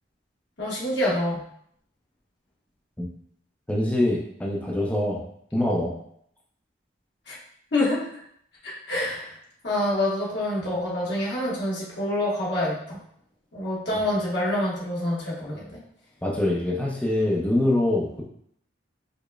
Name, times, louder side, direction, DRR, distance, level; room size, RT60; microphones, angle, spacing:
voice 1, 0.6-1.4 7.3-7.4 7.7-8.2 8.6-9.3 9.6-13.0 13.5-15.8, left 1 dB, 60° left, -6 dB, 1.2 m, -27 dB
voice 2, 3.7-5.3 5.5-5.9 13.9-14.0 16.2-18.2, left 1 dB, 5° left, -3 dB, 0.4 m, -24 dB
4.8 x 2.1 x 2.3 m, 0.67 s
head